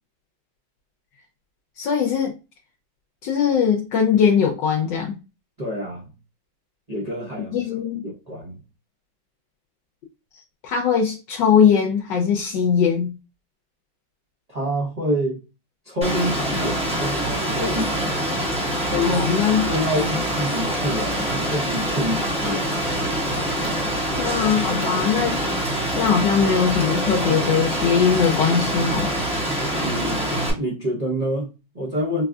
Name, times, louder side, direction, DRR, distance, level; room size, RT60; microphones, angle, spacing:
voice 1, 1.8-2.3 3.2-5.2 7.5-8.0 10.6-13.1 19.0-19.7 24.1-25.4 26.0-29.1, left 7 dB, 75° left, 1.1 m, -20 dB
voice 2, 5.6-6.1 6.9-7.6 8.0-8.6 14.5-15.4 15.8-18.3 18.8-19.3 19.7-22.8 29.8-32.2, equal, 60° right, 0.4 m, -27 dB
Rain, 16.0-30.5, right 1 dB, 5° right, 0.5 m, -25 dB
4.0 x 2.5 x 2.3 m
omnidirectional pair, 2.2 m